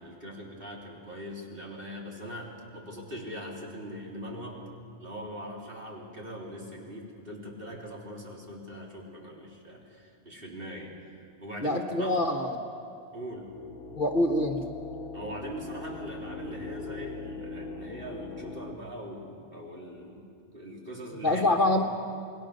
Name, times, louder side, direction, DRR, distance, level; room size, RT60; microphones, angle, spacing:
voice 1, 0.0-4.7 5.0-10.9 11.4-12.2 13.1-13.5 15.1-20.3 20.5-21.7, equal, 50° right, -2 dB, 3.8 m, -41 dB
voice 2, 11.6-12.6 14.0-14.6 21.2-21.8, left 1 dB, 45° left, 3 dB, 1.4 m, -25 dB
sound 1, 13.3-18.8, left 3 dB, 65° left, 1.2 m, -41 dB
29.0 x 20.5 x 6.6 m, 2.5 s
omnidirectional pair, 1.2 m